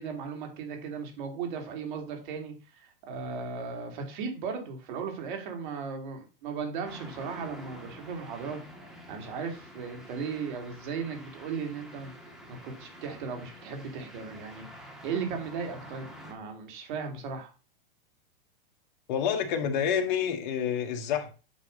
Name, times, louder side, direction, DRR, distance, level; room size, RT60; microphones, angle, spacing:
voice 1, 0.0-8.6 9.1-12.1 12.5-14.7 15.0-17.5, right 5 dB, 55° right, 2.3 m, -36 dB
sound 1, 6.8-16.3, equal, ahead, 1.3 m, -48 dB
voice 2, 19.1-21.3, left 8 dB, 55° left, 1.4 m, -28 dB
8.3 x 3.1 x 5.1 m
hypercardioid pair, 135°, 29 cm